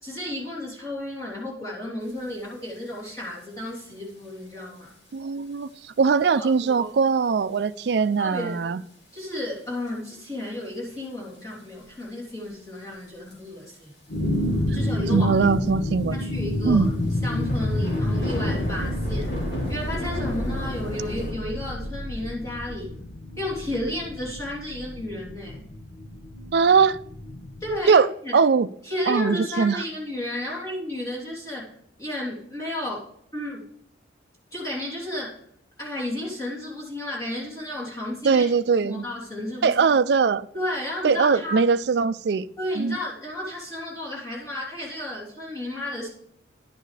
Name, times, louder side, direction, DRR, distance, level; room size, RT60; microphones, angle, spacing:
voice 1, 0.0-4.9 6.4-6.9 8.2-8.6 9.1-13.9 14.7-15.3 16.1-16.9 17.2-19.3 19.7-22.9 23.4-25.6 27.6-28.4 28.8-31.7 32.0-33.6 34.5-35.4 35.8-38.5 38.8-39.9 40.5-41.6 42.6-46.1, left 1 dB, 15° left, 3.2 m, -33 dB
sound 1, 2.7-2.8 3.0-3.4 4.1-4.3 4.9-5.0 5.6-5.7 6.0-6.1 6.3-6.4 7.5-7.8 8.2-8.3 9.2-9.3 9.9-10.3 10.7-10.8 11.3-12.0 13.1-13.4 13.7-13.8 14.0-14.1 14.3-14.4 15.1-15.2 15.5-15.6 16.2-21.3, left 1 dB, 60° left, 3.7 m, -33 dB
voice 2, 5.1-8.8 15.1-16.2 16.6-16.9 26.5-27.0 27.9-28.1 28.3-28.7 29.1-29.8 38.2-39.1 39.6-40.5 41.0-42.5 42.8-43.0, right 5 dB, 60° right, 0.4 m, -21 dB
sound 2, 14.1-27.8, left 1 dB, 85° left, 1.2 m, -29 dB
11.0 x 9.0 x 3.3 m
head